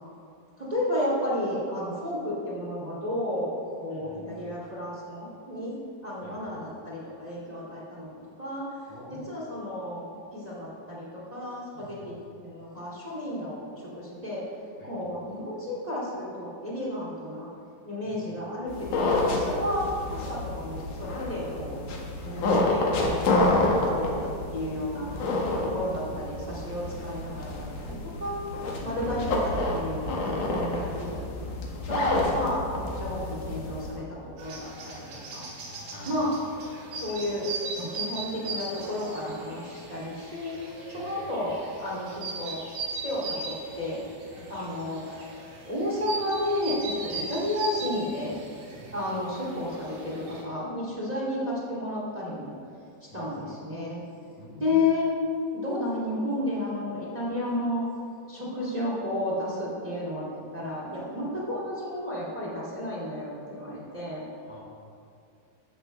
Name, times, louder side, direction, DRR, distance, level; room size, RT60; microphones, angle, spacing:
voice 1, 0.6-5.7 6.0-8.1 8.4-8.6 9.1-12.1 12.4-13.6 14.0-14.4 14.8-17.5 17.8-25.1 25.6-28.4 28.8-31.2 31.5-32.6 33.0-35.4 36.0-36.3 37.0-40.5 40.9-42.6 43.0-44.0 44.5-45.2 45.7-48.3 48.9-52.5 53.1-54.0 54.6-55.1 55.5-57.8 58.3-60.3 60.5-64.3, left 1 dB, 15° right, -6 dB, 1.6 m, -32 dB
voice 2, 3.9-4.3 6.2-6.4 8.9-9.3 11.7-12.1 14.8-14.9 18.0-18.2 25.4-25.9 28.7-29.0 30.7-30.9 35.9-36.2 40.9-41.1 44.3-44.5 47.1-47.2 48.7-48.9 53.1-53.4 54.4-54.8 64.4-64.6, left 1 dB, 45° left, -5 dB, 2.8 m, -47 dB
sound 1, 18.7-34.0, left 2 dB, 60° left, 2.6 m, -29 dB
Boom, 29.0-34.9, right 7 dB, 85° right, 2.3 m, -43 dB
sound 2, 34.4-50.4, right 3 dB, 60° right, 3.8 m, -39 dB
13.5 x 13.0 x 3.3 m, 2.4 s
omnidirectional pair, 5.0 m